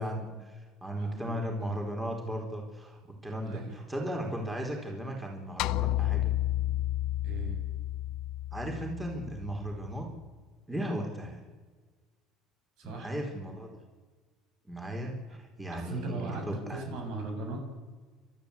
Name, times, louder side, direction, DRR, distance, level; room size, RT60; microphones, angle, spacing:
voice 1, 0.0-6.3 8.5-10.1 10.7-11.4 12.8-13.7 14.6-16.8, equal, 10° right, 2 dB, 4.3 m, -36 dB
voice 2, 1.0-1.4 3.4-3.9 7.2-7.6 12.8-13.2 15.7-17.6, right 3 dB, 70° right, 3 dB, 6.7 m, -38 dB
sound 1, 5.6-10.0, left 15 dB, 65° left, 0.6 m, -31 dB
29.5 x 13.0 x 8.4 m, 1.4 s
cardioid pair, 125°, 0 cm